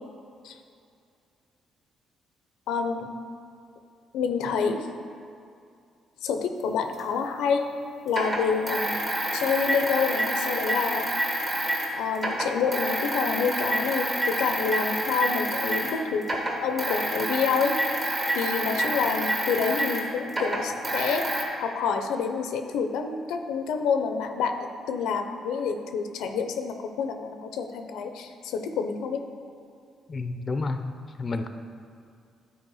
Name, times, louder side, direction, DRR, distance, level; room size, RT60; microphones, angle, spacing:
voice 1, 2.7-3.1 4.1-4.9 6.2-7.7 8.0-9.0 9.3-11.1 11.9-16.2 16.6-17.8 18.1-21.3 21.6-29.2, left 6 dB, 90° left, 6 dB, 0.5 m, -28 dB
sound 1, 7.0-7.1 8.1-11.9 12.1-16.0 16.2-21.4, right 1 dB, 35° right, 1.6 m, -28 dB
voice 2, 30.1-30.8 31.2-31.5, left 3 dB, 35° left, 8 dB, 0.4 m, -29 dB
10.0 x 4.1 x 4.8 m, 2.4 s
cardioid pair, 90°, 0 cm